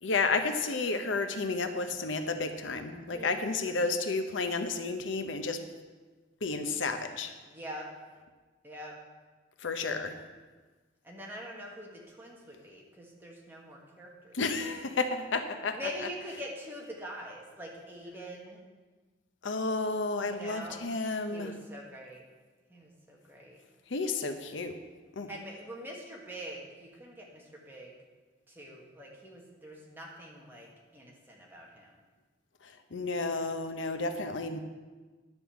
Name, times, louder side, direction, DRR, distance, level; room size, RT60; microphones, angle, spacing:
voice 1, 0.0-5.6 6.4-7.3 9.6-10.2 14.3-15.8 19.4-21.6 23.9-24.8 25.1-25.3 32.6-34.6, left 3 dB, 85° left, 8 dB, 0.8 m, -31 dB
voice 2, 3.1-3.8 7.5-7.9 8.6-8.9 9.9-10.0 11.0-14.4 15.7-18.6 20.2-20.8 21.3-22.2 22.7-23.6 25.3-27.9 28.5-31.9 33.9-34.4, equal, 10° right, -2 dB, 1.7 m, -44 dB
10.5 x 5.4 x 7.3 m, 1.3 s
head